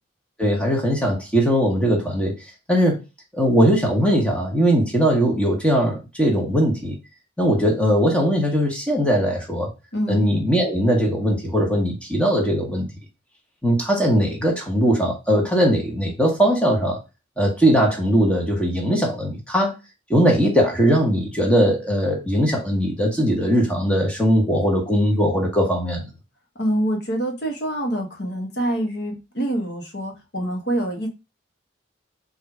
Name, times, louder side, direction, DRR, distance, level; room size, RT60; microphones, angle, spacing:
voice 1, 0.4-2.4 2.7-3.0 3.3-7.0 7.4-9.7 10.1-12.9 13.6-17.0 17.4-19.7 20.1-26.1, equal, 5° left, 1.2 m, -20 dB
voice 2, 26.5-31.1, right 1 dB, 55° left, 1.2 m, -25 dB
3.8 x 2.7 x 4.6 m
head